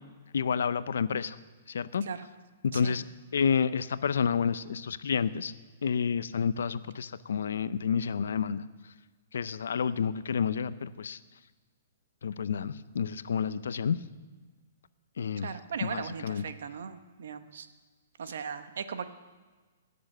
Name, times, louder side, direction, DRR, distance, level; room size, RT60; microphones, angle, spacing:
voice 1, 0.3-1.4 1.7-2.0 2.6-3.0 3.3-5.5 5.8-8.6 9.3-11.2 12.2-14.0 15.2-15.5 15.8-16.4, left 6 dB, 80° left, 16 dB, 0.5 m, -29 dB
voice 2, 15.4-17.7 18.2-19.1, right 7 dB, 75° right, 10 dB, 0.9 m, -38 dB
18.0 x 7.0 x 6.6 m, 1.4 s
hypercardioid pair, 155°, 0 cm